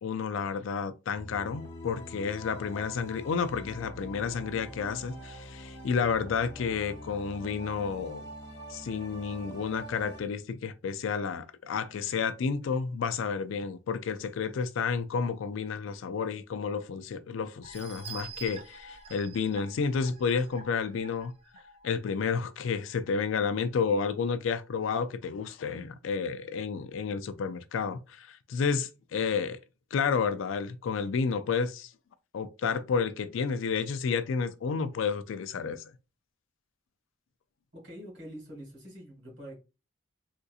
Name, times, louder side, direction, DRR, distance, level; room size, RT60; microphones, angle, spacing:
voice 1, 0.0-8.2 8.7-21.3 21.8-29.6 29.9-31.9 32.3-35.9, left 5 dB, 70° left, 0.3 m, -31 dB
sound 1, 1.1-10.2, equal, 55° left, 0.7 m, -44 dB
sound 2, 17.6-22.1 22.6-22.7 23.1-23.2, right 5 dB, 30° right, 0.6 m, -47 dB
voice 2, 37.7-39.6, equal, 55° right, 1.8 m, -45 dB
3.6 x 2.7 x 2.3 m
head